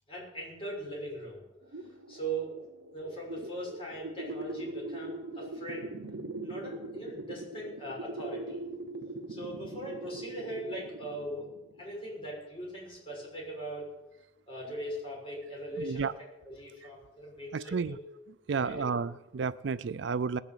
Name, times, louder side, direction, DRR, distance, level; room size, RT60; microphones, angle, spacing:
voice 1, 0.1-1.4 2.1-2.5 2.9-5.9 6.4-8.6 9.3-11.5 11.8-13.8 14.5-16.1 16.4-18.0 18.6-18.8, right 1 dB, 30° left, -3 dB, 6.6 m, -40 dB
sound 1, 1.6-11.9, right 2 dB, 85° right, 1.1 m, -41 dB
voice 2, 15.8-16.1 17.5-18.0 18.5-20.4, right 5 dB, 70° right, 16 dB, 0.4 m, -31 dB
19.5 x 7.1 x 8.1 m, 0.99 s
head